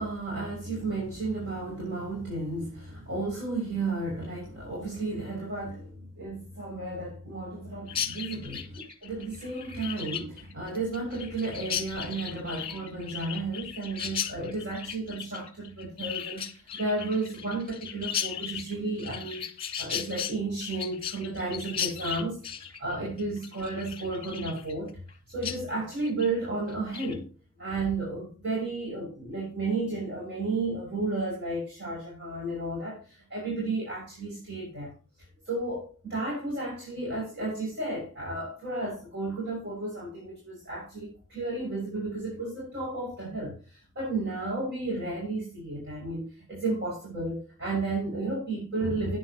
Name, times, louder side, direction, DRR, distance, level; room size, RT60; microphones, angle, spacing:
voice 1, 0.0-19.5 19.8-22.4 22.8-25.0 25.3-27.3 27.6-34.9 35.5-49.2, right 2 dB, 50° right, 6.4 m, -33 dB
Chirp tweet, 7.9-25.1 25.4-25.6 25.9-26.3 26.7-27.2, left 9 dB, 25° left, 1.6 m, -36 dB
14.0 x 10.0 x 3.0 m
head